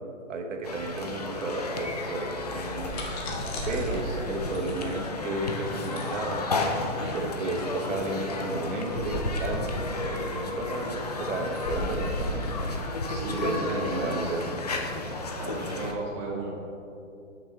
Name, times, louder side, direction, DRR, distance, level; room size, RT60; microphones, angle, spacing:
voice 1, 0.3-2.9 3.7-6.5 7.1-9.7 9.9-12.9 13.4-14.4, right 2 dB, 65° right, 2 dB, 1.2 m, -33 dB
sound 1, 0.6-15.9, left 2 dB, 30° left, 0.4 m, -33 dB
sound 2, 2.8-13.9, equal, 50° left, 1.4 m, -37 dB
voice 2, 3.6-4.2 7.0-7.2 13.1-14.4 15.4-16.5, right 2 dB, 20° right, -3 dB, 0.7 m, -35 dB
6.1 x 6.0 x 4.6 m, 2.6 s
hypercardioid pair, 155°, 40 cm